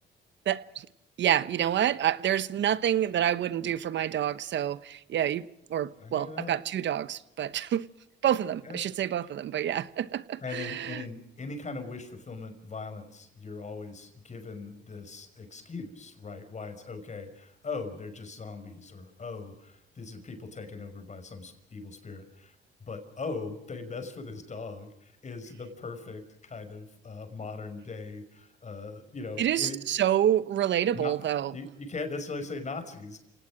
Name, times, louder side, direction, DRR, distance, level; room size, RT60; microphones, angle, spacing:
voice 1, 0.5-0.9 1.2-5.4 5.7-7.8 8.2-11.0 29.4-31.5, right 10 dB, 65° right, 1.1 m, -28 dB
voice 2, 6.0-6.6 8.6-8.9 10.4-22.5 22.8-29.8 30.9-31.1 31.5-33.2, left 4 dB, 35° left, 5.8 m, -40 dB
29.0 x 18.5 x 6.3 m
cardioid pair, 90°, 20 cm